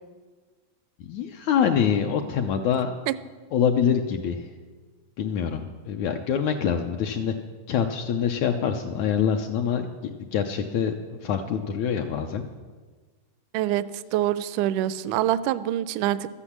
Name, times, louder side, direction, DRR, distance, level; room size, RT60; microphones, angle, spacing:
voice 1, 1.0-2.9 3.5-4.5 5.2-7.3 7.7-12.4, left 7 dB, 75° left, 4 dB, 1.8 m, -25 dB
voice 2, 13.5-16.3, right 13 dB, 80° right, 15 dB, 1.9 m, -25 dB
13.5 x 9.9 x 7.2 m, 1.4 s
omnidirectional pair, 3.8 m